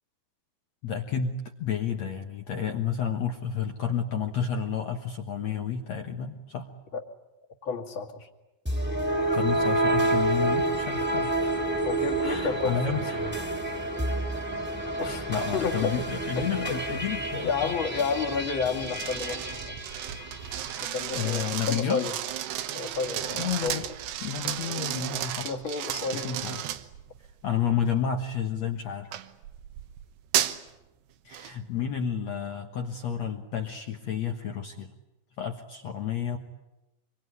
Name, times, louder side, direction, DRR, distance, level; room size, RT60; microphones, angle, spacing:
voice 1, 0.8-6.7 9.3-11.7 12.1-13.3 15.3-17.7 20.8-22.1 23.3-23.9 24.2-25.6 26.1-26.8 27.4-29.1 31.2-34.9 35.4-36.4, left 7 dB, 65° left, 4 dB, 1.8 m, -31 dB
voice 2, 7.6-8.3 11.8-13.3 15.0-16.0 16.4-16.8 17.3-19.8 20.8-22.2 22.7-23.9 25.4-26.3, left 5 dB, 35° left, 2 dB, 2.3 m, -31 dB
sound 1, 8.6-21.0, right 2 dB, 5° right, 1.9 m, -29 dB
sound 2, 18.9-27.3 27.9-28.2 29.1-30.7 31.3-31.5, right 12 dB, 80° right, 3.2 m, -33 dB
26.0 x 23.5 x 9.6 m, 0.99 s
omnidirectional pair, 5.0 m